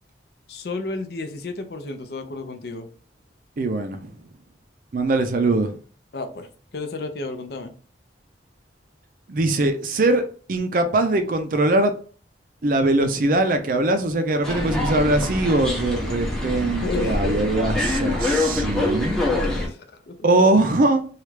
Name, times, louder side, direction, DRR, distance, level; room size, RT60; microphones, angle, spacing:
voice 1, 0.5-2.9 6.1-7.7 16.8-17.4 19.2-20.2, left 3 dB, 60° left, 0.5 m, -32 dB
voice 2, 3.6-4.1 4.9-5.7 9.3-10.2 10.5-11.9 12.6-19.2 20.2-21.1, right 2 dB, 50° right, 0.4 m, -21 dB
sound 1, 14.4-19.7, left 2 dB, 5° left, 0.6 m, -25 dB
3.1 x 2.4 x 3.2 m
head